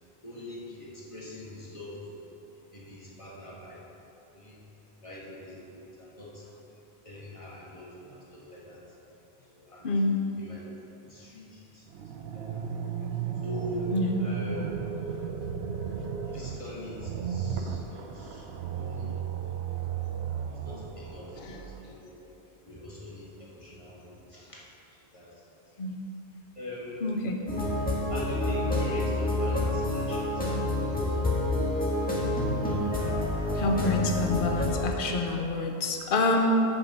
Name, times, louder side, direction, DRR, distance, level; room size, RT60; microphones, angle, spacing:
voice 1, 0.2-2.3 2.7-3.8 4.3-4.6 5.0-6.4 7.0-8.8 9.5-9.9 10.4-10.6 11.0-11.8 12.3-12.7 13.4-13.9 14.2-14.8 16.3-18.4 18.7-19.2 20.6-21.4 21.7-22.4 22.7-24.6 25.1-25.3 26.6-27.5 28.1-31.2, left 1 dB, 30° left, -6 dB, 2.0 m, -42 dB
voice 2, 9.8-10.1 13.9-14.3 21.4-21.7 25.8-26.0 27.0-27.4 33.5-36.6, left 2 dB, 55° left, 2 dB, 1.0 m, -27 dB
sound 1, 11.9-21.8, right 7 dB, 80° right, 0.9 m, -35 dB
sound 2, 27.5-34.8, left 1 dB, 10° left, 1.7 m, -28 dB
8.6 x 6.9 x 5.6 m, 3.0 s
omnidirectional pair, 1.1 m